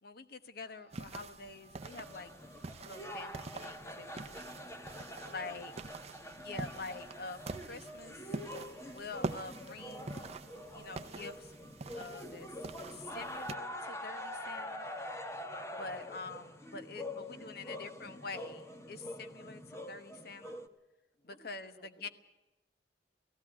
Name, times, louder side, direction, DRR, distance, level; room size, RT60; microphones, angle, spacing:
voice 1, 0.0-2.3 2.8-4.5 4.8-5.7 6.3-8.2 8.9-10.3 10.7-11.6 11.9-12.5 12.9-14.9 15.7-20.6 21.2-22.1, left 3 dB, 60° left, 10 dB, 1.2 m, -46 dB
sound 1, 0.6-4.6 5.2-11.2, left 1 dB, 80° left, 4.0 m, -64 dB
sound 2, 0.9-13.6, right 3 dB, 35° right, 0.6 m, -45 dB
sound 3, 1.8-20.7, left 1 dB, 15° left, 1.1 m, -45 dB
voice 2, 5.2-5.9 17.2-18.2 21.1-22.1, left 1 dB, 40° left, 2 dB, 2.9 m, -61 dB
17.5 x 16.0 x 9.5 m, 1.0 s
head